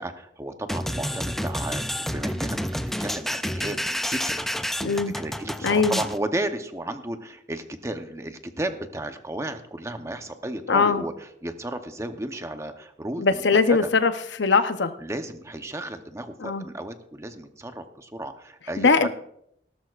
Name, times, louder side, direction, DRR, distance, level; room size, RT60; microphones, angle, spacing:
voice 1, 0.0-4.4 5.2-13.9 15.0-19.1, right 1 dB, 15° right, 7 dB, 0.8 m, -33 dB
sound 1, 0.7-6.2, equal, ahead, 0.4 m, -29 dB
voice 2, 4.8-5.1 5.6-6.0 10.7-11.0 13.2-14.9 16.4-16.6 18.8-19.1, left 4 dB, 90° left, 10 dB, 0.8 m, -21 dB
18.0 x 12.5 x 2.5 m, 0.74 s
head